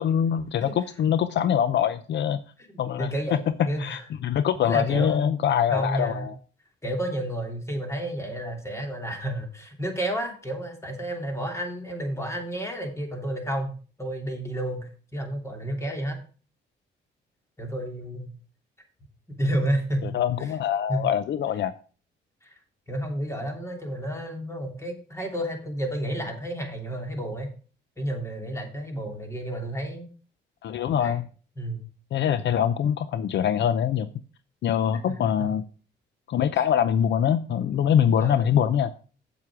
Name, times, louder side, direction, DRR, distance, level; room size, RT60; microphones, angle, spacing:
voice 1, 0.0-2.4 2.8-3.1 3.8-6.3 20.0-21.7 30.6-31.2 32.1-34.1 34.6-35.6 36.3-38.9, left 9 dB, 65° left, 13 dB, 0.6 m, -24 dB
voice 2, 3.0-4.0 4.6-5.3 5.7-6.3 6.8-16.2 17.6-18.3 19.3-20.5 20.9-21.1 22.4-22.5 22.9-27.5 28.0-30.1 31.0-31.2 31.6-31.9 35.1-35.5 38.2-38.5, right 1 dB, 15° left, 3 dB, 3.0 m, -31 dB
8.4 x 7.5 x 4.7 m, 0.39 s
cardioid pair, 90°, 20 cm